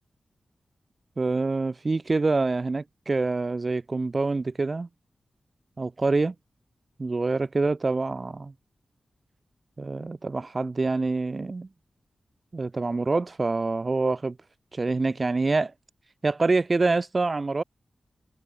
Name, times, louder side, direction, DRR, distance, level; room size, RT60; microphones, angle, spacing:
voice 1, 1.2-4.9 5.8-6.3 7.0-8.5 9.8-11.7 12.5-14.4 14.7-15.7 16.2-17.6, right 3 dB, 40° right, 5.9 m, -26 dB
wide cardioid pair, 75°, 0 cm